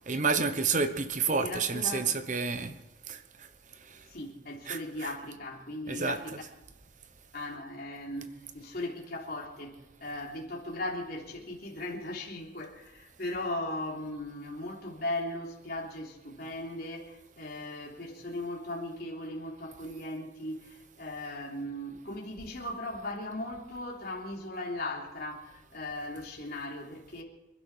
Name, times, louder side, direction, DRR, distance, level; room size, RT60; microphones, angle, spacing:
voice 1, 0.1-2.8 3.1-3.5 3.9-4.0 4.7-5.1 5.9-6.2, right 5 dB, 40° right, 10 dB, 1.0 m, -30 dB
voice 2, 1.3-2.2 3.8-6.4 7.3-27.2, left 1 dB, 50° left, -2 dB, 3.5 m, -38 dB
27.0 x 11.5 x 4.5 m, 0.98 s
head